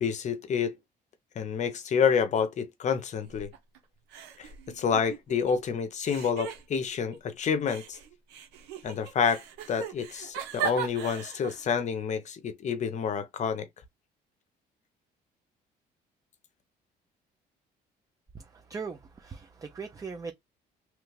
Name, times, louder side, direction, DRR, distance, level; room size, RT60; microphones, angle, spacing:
voice 1, 0.0-0.7 1.4-3.5 4.4-4.5 4.8-8.0 8.8-9.4 9.7-13.7, left 6 dB, 45° left, 0.7 m, -28 dB
sound 1, 3.2-3.8 4.1-5.5 6.0-7.2 7.6-11.7, right 8 dB, 90° right, 1.0 m, -38 dB
voice 2, 18.5-20.3, right 5 dB, 20° right, 0.5 m, -39 dB
3.1 x 2.3 x 3.2 m
cardioid pair, 110°, 17 cm